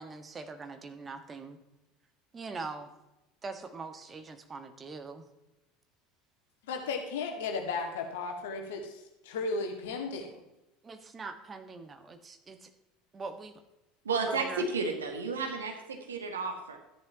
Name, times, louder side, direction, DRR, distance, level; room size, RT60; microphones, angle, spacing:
voice 1, 0.0-1.6 2.3-2.9 3.4-5.3 10.8-12.7 13.1-13.6 14.3-14.6, right 4 dB, 25° right, 8 dB, 1.4 m, -42 dB
voice 2, 6.6-10.3, left 4 dB, 65° left, 3 dB, 1.9 m, -35 dB
voice 3, 14.0-16.8, right 4 dB, 80° right, 3 dB, 1.9 m, -32 dB
13.5 x 10.5 x 2.9 m, 0.97 s
figure-of-eight pair, 70°, 0 cm